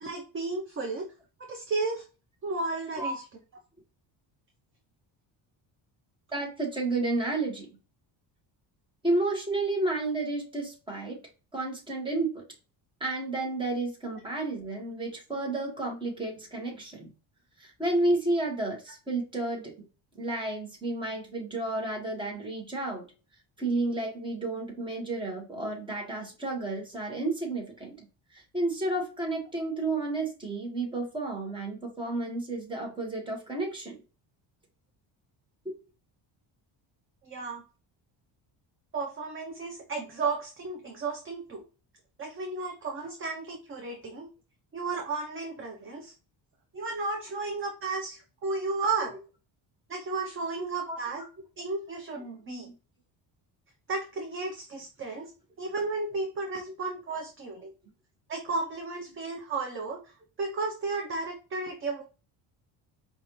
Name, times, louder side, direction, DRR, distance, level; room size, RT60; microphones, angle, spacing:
voice 1, 0.0-1.0 1.4-2.0 2.4-3.2 37.2-37.6 38.9-41.6 42.2-44.3 44.7-46.1 46.7-49.1 49.9-51.2 51.6-52.7 53.9-55.3 55.6-57.7 58.3-62.0, right 3 dB, 25° right, 2 dB, 0.5 m, -33 dB
voice 2, 6.3-7.7 9.0-11.2 11.5-12.4 13.0-17.1 17.6-19.7 20.1-23.0 23.6-28.1 28.3-34.0 35.6-35.7 50.6-51.0 52.6-52.7, right 2 dB, 10° right, 0 dB, 1.0 m, -31 dB
4.9 x 2.4 x 2.9 m, 0.33 s
cardioid pair, 170°, 47 cm